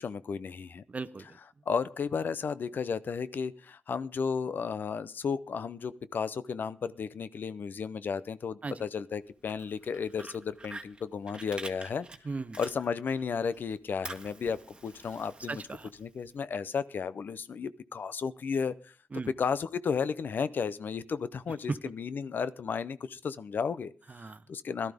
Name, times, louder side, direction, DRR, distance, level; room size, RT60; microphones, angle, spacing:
voice 1, 0.0-0.8 1.7-12.1 12.6-15.6 16.0-18.9 19.4-23.9 24.5-24.9, left 6 dB, 70° left, 16 dB, 0.6 m, -33 dB
voice 2, 0.9-1.4 8.6-8.8 12.2-12.6 15.5-15.9 19.1-19.3 21.7-21.8 24.1-24.4, right 3 dB, 45° right, 15 dB, 0.8 m, -36 dB
Fire, 9.3-13.2 13.5-16.3, right 2 dB, 30° right, 1.5 m, -47 dB
17.0 x 12.5 x 3.5 m, 0.39 s
cardioid pair, 55°, 3 cm